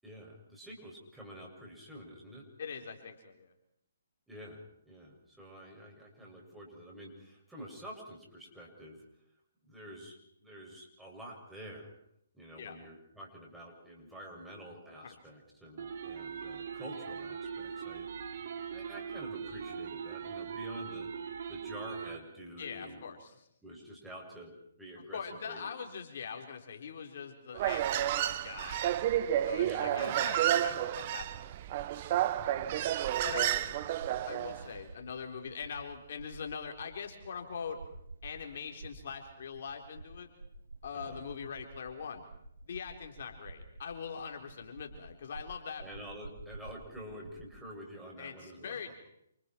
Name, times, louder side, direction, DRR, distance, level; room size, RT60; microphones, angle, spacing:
voice 1, 0.0-2.5 4.3-9.1 9.7-11.9 12.3-18.1 18.7-21.1 21.5-23.0 23.6-25.7 29.6-29.9 32.2-33.3 33.8-34.0 40.9-41.2 45.8-48.9, equal, 5° right, -3 dB, 7.0 m, -48 dB
voice 2, 2.6-3.5 12.6-12.8 15.0-15.1 22.6-23.3 25.0-28.9 29.4-31.4 33.2-33.8 34.3-37.8 38.2-40.3 40.8-42.2 42.7-45.9 48.2-48.9, left 6 dB, 55° left, 4 dB, 4.0 m, -42 dB
sound 1, 15.8-22.2, right 6 dB, 55° right, 3.7 m, -41 dB
Human voice, 27.5-34.6, right 12 dB, 40° right, 1.4 m, -31 dB
sound 2, 33.9-47.6, right 3 dB, 80° right, 7.1 m, -51 dB
29.0 x 28.5 x 4.6 m, 0.74 s
hypercardioid pair, 145°, 0 cm